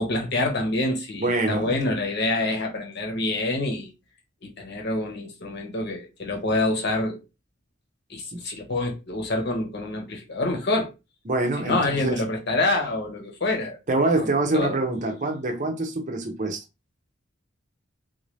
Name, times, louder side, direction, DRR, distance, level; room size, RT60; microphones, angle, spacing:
voice 1, 0.0-3.9 4.4-7.2 8.1-10.9 11.6-13.8 14.2-14.8, left 2 dB, 55° left, 1.1 m, -26 dB
voice 2, 1.2-1.7 11.3-12.2 13.9-16.6, right 2 dB, 40° right, 0.6 m, -25 dB
3.8 x 2.6 x 3.2 m
head